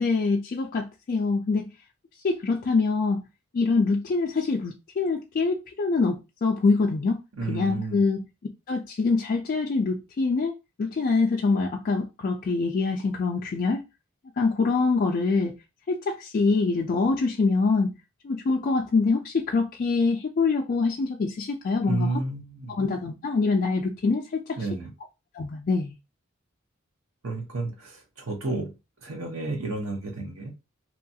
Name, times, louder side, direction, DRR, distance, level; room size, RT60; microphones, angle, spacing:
voice 1, 0.0-1.7 2.2-3.2 3.5-7.2 7.5-8.2 8.7-10.5 10.8-13.8 14.4-15.5 15.9-17.9 18.2-22.1 22.7-24.6 25.3-26.0, left 4 dB, 45° left, 0.3 m, -24 dB
voice 2, 7.4-8.0 21.9-22.8 24.6-24.9 27.2-28.7 29.0-30.5, right 2 dB, 90° right, 0.9 m, -31 dB
2.9 x 2.3 x 2.6 m
head